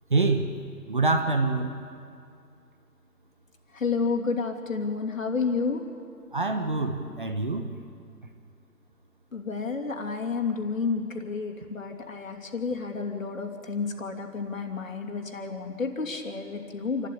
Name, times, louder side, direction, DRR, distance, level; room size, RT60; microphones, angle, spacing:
voice 1, 0.1-0.5 0.9-1.8 6.3-7.7, right 3 dB, 30° right, 6 dB, 1.1 m, -25 dB
voice 2, 3.7-5.8 9.3-17.1, left 4 dB, 50° left, 4 dB, 2.9 m, -30 dB
28.0 x 12.5 x 8.6 m, 2.4 s
figure-of-eight pair, 160°, 49 cm